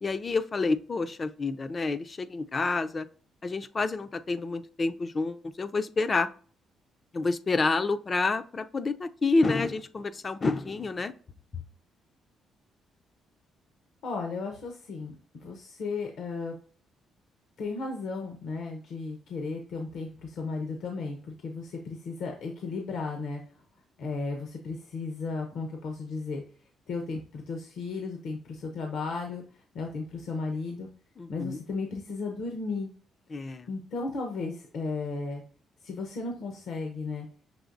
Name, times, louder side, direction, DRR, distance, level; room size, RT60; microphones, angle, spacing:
voice 1, 0.0-3.1 3.4-6.3 7.1-11.1 31.2-31.6 33.3-33.7, left 3 dB, 35° left, 10 dB, 0.4 m, -28 dB
voice 2, 14.0-16.5 17.6-23.4 24.0-26.4 26.9-29.4 29.7-30.9 31.3-32.9 33.7-35.4 35.8-37.3, left 4 dB, 75° left, 2 dB, 0.7 m, -35 dB
6.1 x 3.1 x 2.5 m, 0.42 s
cardioid pair, 90°, 0 cm